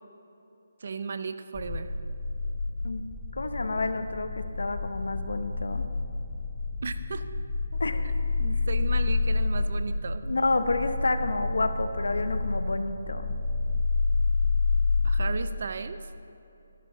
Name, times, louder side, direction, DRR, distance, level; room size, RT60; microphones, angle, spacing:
voice 1, 0.8-1.9 6.8-7.2 7.7-8.1 8.4-10.2 15.0-16.0, right 4 dB, 55° right, 11 dB, 0.6 m, -35 dB
sound 1, 1.5-15.3, left 3 dB, 20° left, 1.3 m, -29 dB
voice 2, 3.4-5.8 7.8-8.0 10.2-13.3, left 2 dB, 80° left, 9 dB, 0.8 m, -29 dB
12.5 x 11.5 x 3.9 m, 2.9 s
figure-of-eight pair, 160°, 0 cm